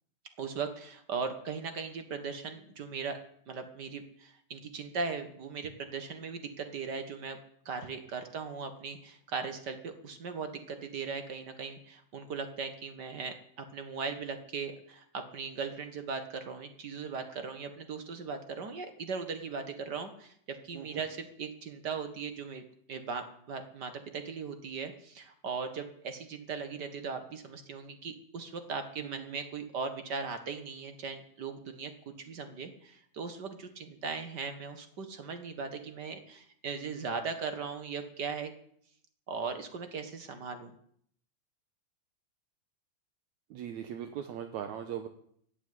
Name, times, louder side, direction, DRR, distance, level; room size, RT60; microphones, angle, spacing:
voice 1, 0.4-3.2 3.5-7.4 7.6-13.3 13.7-22.6 22.9-38.5 39.3-40.7, right 5 dB, 45° right, 8 dB, 1.4 m, -38 dB
voice 2, 29.0-29.4 43.5-45.1, right 9 dB, 70° right, 8 dB, 2.1 m, -39 dB
15.0 x 8.8 x 9.4 m, 0.66 s
omnidirectional pair, 3.8 m